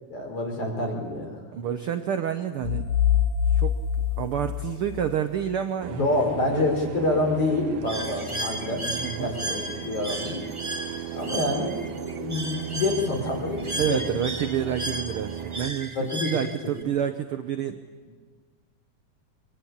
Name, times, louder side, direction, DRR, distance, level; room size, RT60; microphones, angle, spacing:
voice 1, 0.1-1.4 5.9-8.9 9.2-10.4 11.1-11.7 12.1-14.0 15.9-16.3, left 2 dB, 50° left, 1 dB, 5.6 m, -27 dB
voice 2, 1.5-2.8 3.1-3.2 3.5-3.7 4.2-6.0 6.5-6.6 8.8-9.3 13.8-17.8, right 9 dB, 65° right, 8 dB, 1.4 m, -29 dB
sound 1, 2.6-5.5, left 9 dB, 70° left, 1.5 m, -25 dB
sound 2, 5.8-15.7, right 8 dB, 90° right, 2.7 m, -36 dB
Bird, 7.9-16.8, right 1 dB, 15° right, 1.3 m, -35 dB
24.0 x 22.5 x 8.7 m, 1.5 s
omnidirectional pair, 3.5 m